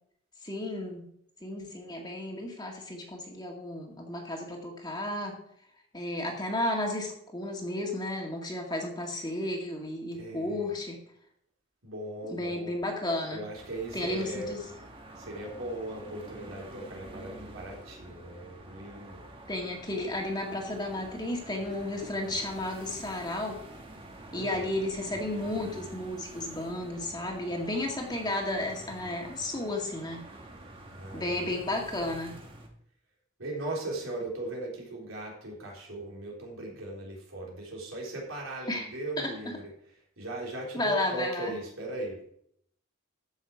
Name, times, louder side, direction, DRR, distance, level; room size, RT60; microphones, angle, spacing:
voice 1, 0.4-1.0 1.4-5.4 5.9-11.0 12.3-13.4 13.9-14.6 19.5-23.6 24.3-30.2 31.1-32.3 38.7-38.9 40.7-41.5, left 1 dB, 20° left, 1 dB, 1.9 m, -33 dB
voice 2, 10.1-10.7 11.8-12.8 13.3-14.6 15.2-19.2 24.3-24.7 28.8-28.9 30.9-31.5 33.4-42.2, right 2 dB, 80° right, -2 dB, 3.8 m, -38 dB
sound 1, 13.6-32.7, right 1 dB, 25° right, 1.5 m, -47 dB
14.0 x 6.2 x 4.8 m, 0.69 s
head